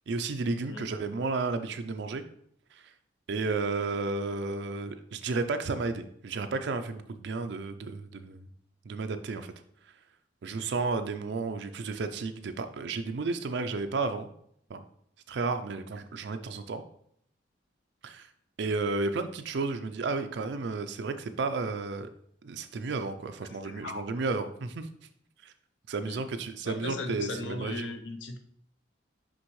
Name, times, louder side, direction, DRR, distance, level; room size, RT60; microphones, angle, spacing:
voice 1, 0.1-2.2 2.7-2.9 3.3-8.5 8.9-9.5 10.4-14.3 14.7-14.8 15.3-16.8 18.0-18.3 18.6-22.1 22.4-24.9 25.4-25.5 25.9-27.9, right 3 dB, 60° right, 8 dB, 0.4 m, -32 dB
voice 2, 23.5-24.0 26.0-26.2 26.6-28.4, left 2 dB, 65° left, 6 dB, 0.7 m, -37 dB
6.1 x 5.2 x 3.1 m, 0.68 s
head